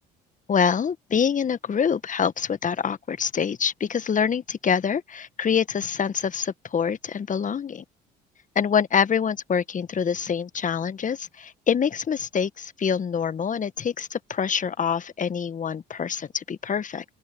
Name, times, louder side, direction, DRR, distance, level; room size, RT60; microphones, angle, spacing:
voice 1, 0.5-7.8 8.5-17.0, left 7 dB, 40° left, 1.5 m, -25 dB
open air
hypercardioid pair, 60°, 21 cm